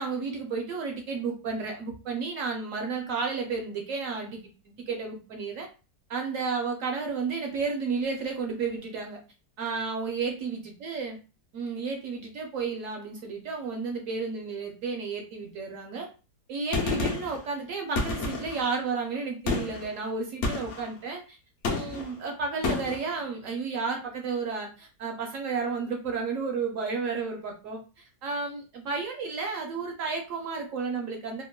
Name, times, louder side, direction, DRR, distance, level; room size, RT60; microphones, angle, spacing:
voice 1, 0.0-4.4 4.7-5.7 6.1-9.2 9.6-11.2 11.5-16.1 16.5-21.4 21.7-31.4, right 4 dB, 65° right, 2 dB, 0.9 m, -32 dB
Gunshot gunfire, 16.7-17.4 18.0-18.7 19.5-19.9 20.4-20.9 21.6-22.1 22.6-23.0, left 3 dB, 60° left, 0.8 m, -29 dB
3.5 x 2.1 x 2.2 m, 0.32 s
omnidirectional pair, 1.7 m